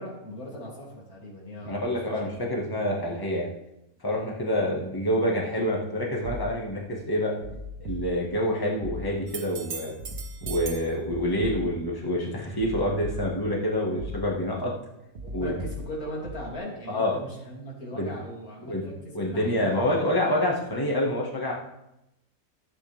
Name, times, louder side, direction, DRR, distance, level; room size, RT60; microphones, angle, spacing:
voice 1, 0.0-2.2 15.2-20.1, equal, 80° left, -4 dB, 3.5 m, -39 dB
voice 2, 1.6-3.5 4.0-7.3 7.9-9.9 10.4-14.7 15.3-15.5 16.9-17.2 18.0-18.1 18.7-18.8 19.1-21.5, left 1 dB, 15° left, -3 dB, 1.8 m, -27 dB
sound 1, 6.2-6.9 7.4-8.5 8.8-9.5 10.0-12.0 12.6-13.6 14.0-14.6 15.2-16.6, equal, 75° right, 1.5 m, -39 dB
sound 2, 9.3-10.9 14.6-14.7, right 6 dB, 90° right, 1.7 m, -39 dB
14.5 x 8.4 x 3.6 m, 0.88 s
omnidirectional pair, 1.5 m